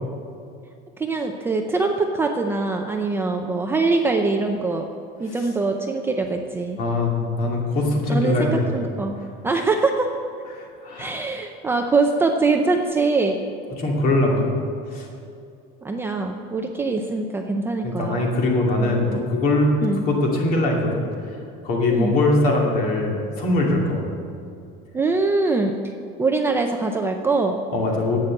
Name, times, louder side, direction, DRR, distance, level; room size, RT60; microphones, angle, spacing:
voice 1, 1.0-4.9 5.2-6.8 8.1-9.1 9.4-10.1 11.0-13.4 15.8-18.2 19.1-19.2 19.8-20.1 21.9-22.2 24.9-25.7 26.2-27.6, right 3 dB, 10° right, 3 dB, 0.4 m, -23 dB
voice 2, 6.8-8.7 10.5-11.1 13.8-14.5 14.9-15.1 17.8-19.8 20.0-21.0 21.6-24.0 27.7-28.2, left 2 dB, 45° left, -1 dB, 2.5 m, -21 dB
11.0 x 8.5 x 7.8 m, 2.5 s
cardioid pair, 170°, 21 cm